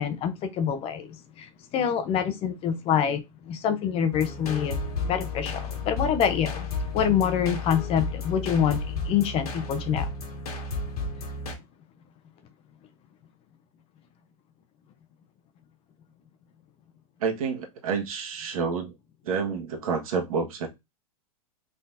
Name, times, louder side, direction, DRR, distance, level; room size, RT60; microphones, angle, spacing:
voice 1, 0.0-4.8 5.0-6.7 6.9-10.1, left 8 dB, 30° left, 0.8 m, -26 dB
sound 1, 4.1-11.5, left 3 dB, 85° left, 1.9 m, -33 dB
voice 2, 17.2-18.9 19.2-20.7, right 5 dB, 70° right, 1.5 m, -29 dB
4.1 x 3.8 x 2.6 m
hypercardioid pair, 130°, 19 cm